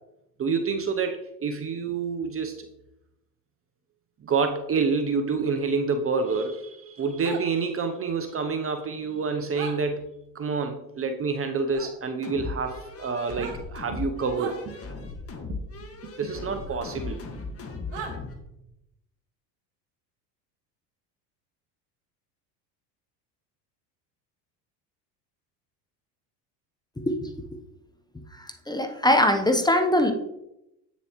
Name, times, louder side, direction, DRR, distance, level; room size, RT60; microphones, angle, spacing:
voice 1, 0.4-2.7 4.2-10.1 10.3-14.6 15.5-15.6 16.2-17.2, right 4 dB, 25° right, 7 dB, 0.7 m, -28 dB
sound 1, 7.2-7.4 9.5-9.7 11.7-11.9 13.2-13.6 14.3-14.6 16.7-16.8 17.9-18.1, right 6 dB, 65° right, 1.8 m, -36 dB
sound 2, 12.2-18.4, left 3 dB, 30° left, 1.7 m, -37 dB
voice 2, 28.7-30.1, left 1 dB, 10° left, 7 dB, 0.9 m, -21 dB
8.3 x 7.0 x 3.0 m, 0.85 s
hypercardioid pair, 85°, 49 cm